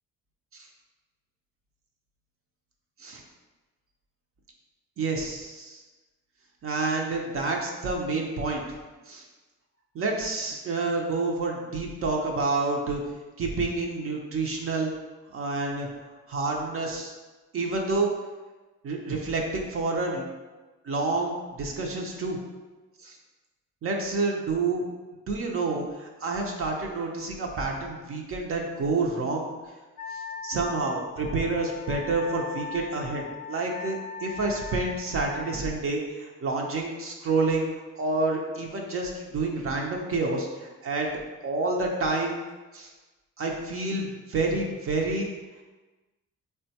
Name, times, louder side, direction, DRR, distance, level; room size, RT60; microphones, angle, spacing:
voice 1, 5.0-5.8 6.6-8.6 9.1-9.3 9.9-13.0 13.4-14.9 15.3-15.9 16.3-17.1 17.5-18.1 18.8-20.2 20.8-22.4 23.0-23.2 23.8-24.9 25.3-29.5 30.1-37.7 38.0-41.1 41.4-42.4 42.7-42.9 43.4-45.3, right 3 dB, 45° right, 0 dB, 0.5 m, -28 dB
Wind instrument woodwind instrument, 30.0-35.6, left 5 dB, 85° left, 0.5 m, -39 dB
3.7 x 2.2 x 2.8 m, 1.2 s
cardioid pair, 90°, 30 cm